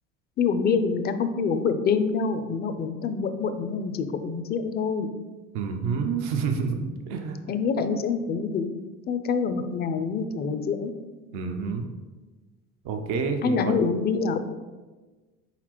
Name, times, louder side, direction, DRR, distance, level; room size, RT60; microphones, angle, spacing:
voice 1, 0.4-5.1 7.5-8.7 9.1-10.9 13.4-14.4, left 5 dB, 25° left, 10 dB, 0.4 m, -26 dB
voice 2, 5.5-7.4 11.3-11.9 12.8-13.7, right 5 dB, 75° right, 4 dB, 0.6 m, -28 dB
4.1 x 4.1 x 2.9 m, 1.3 s
hypercardioid pair, 70°, 39 cm